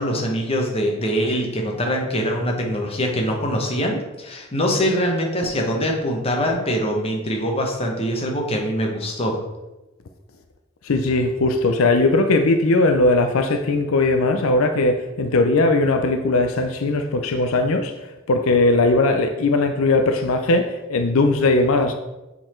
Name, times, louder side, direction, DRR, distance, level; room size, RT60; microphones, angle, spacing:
voice 1, 0.0-9.4, equal, 30° left, 1.1 m, -23 dB
voice 2, 10.8-17.9 18.3-21.9, left 2 dB, 75° left, 0.5 m, -19 dB
7.7 x 4.1 x 4.4 m
head